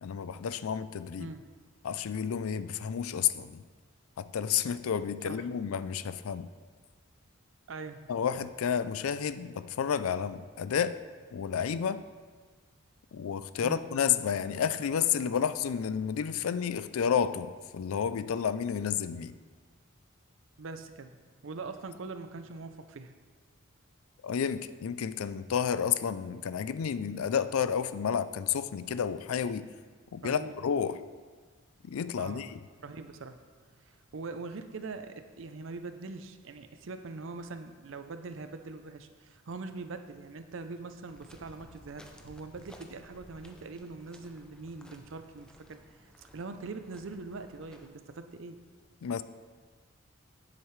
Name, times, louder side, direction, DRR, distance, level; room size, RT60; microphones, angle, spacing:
voice 1, 0.0-1.3 1.8-3.6 4.2-6.5 8.1-11.0 11.3-12.0 13.1-19.4 24.2-29.7 30.1-31.0 31.8-32.6 49.0-49.2, left 7 dB, 90° left, 14 dB, 0.4 m, -31 dB
voice 2, 7.7-8.0 13.6-13.8 20.6-21.2 21.4-23.1 30.2-30.5 32.2-32.5 32.8-33.4 33.8-45.8 46.2-48.6, right 3 dB, 70° right, 9 dB, 0.5 m, -42 dB
sound 1, 41.0-47.9, equal, 5° left, 0.5 m, -56 dB
10.0 x 7.6 x 3.2 m, 1.5 s
head